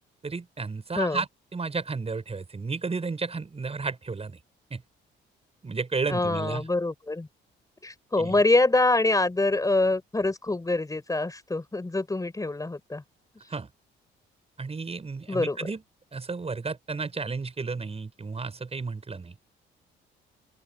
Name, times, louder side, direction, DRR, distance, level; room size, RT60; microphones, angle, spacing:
voice 1, 0.2-4.4 4.7-4.8 5.6-6.6 8.2-8.4 13.5-13.7 14.6-15.8 16.1-19.3, right 4 dB, 30° right, 7.7 m, -32 dB
voice 2, 6.1-7.3 7.8-13.0 15.3-15.6, left 2 dB, 15° left, 5.0 m, -25 dB
open air
cardioid pair, 90°, 20 cm